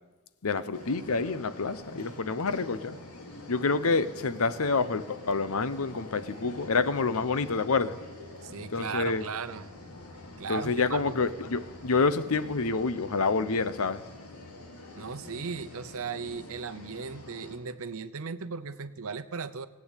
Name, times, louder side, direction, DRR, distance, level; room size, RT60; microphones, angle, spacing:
voice 1, 0.4-3.0 3.5-8.0 8.7-9.2 10.5-14.0, left 4 dB, 70° left, 13 dB, 0.8 m, -28 dB
sound 1, 0.7-17.6, left 2 dB, 85° left, 2.9 m, -46 dB
voice 2, 8.4-9.7 10.4-11.1 14.9-19.7, right 5 dB, 65° right, 13 dB, 0.7 m, -37 dB
18.0 x 8.6 x 8.3 m, 1.2 s
head